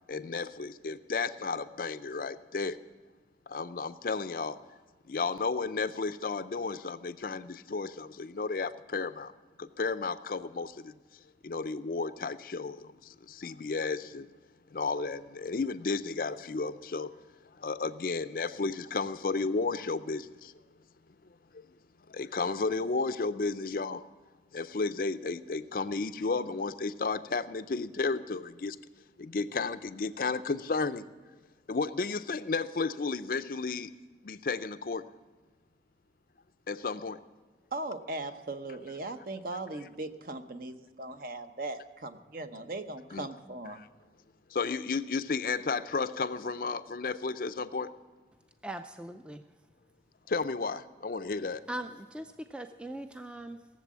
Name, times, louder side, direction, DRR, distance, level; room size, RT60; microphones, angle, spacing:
voice 1, 0.1-2.8 3.5-4.6 5.1-9.3 9.6-10.9 11.4-14.3 14.7-17.1 17.6-20.5 22.1-24.1 24.5-28.8 29.2-31.0 31.7-33.9 34.2-35.0 36.7-37.2 43.1-43.3 43.8-43.9 44.5-47.9 50.3-51.6, left 4 dB, 50° left, 12 dB, 0.5 m, -33 dB
voice 2, 37.7-43.8, right 2 dB, 50° right, 8 dB, 0.8 m, -39 dB
voice 3, 48.6-49.5 51.7-53.7, right 1 dB, 5° right, 8 dB, 0.4 m, -40 dB
17.5 x 7.5 x 7.3 m, 1.4 s
head